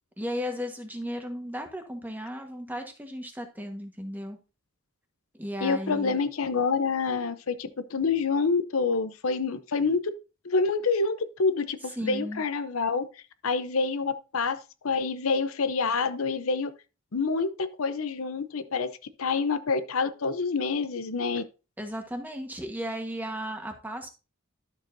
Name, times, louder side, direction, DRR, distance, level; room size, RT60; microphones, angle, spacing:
voice 1, 0.2-4.4 5.3-6.2 12.0-12.4 21.8-24.1, equal, 10° right, 1.3 m, -35 dB
voice 2, 5.6-10.0 10.4-13.1 13.4-16.7 17.1-18.9 19.2-21.4, left 4 dB, 80° left, 0.7 m, -27 dB
12.0 x 6.8 x 2.7 m
head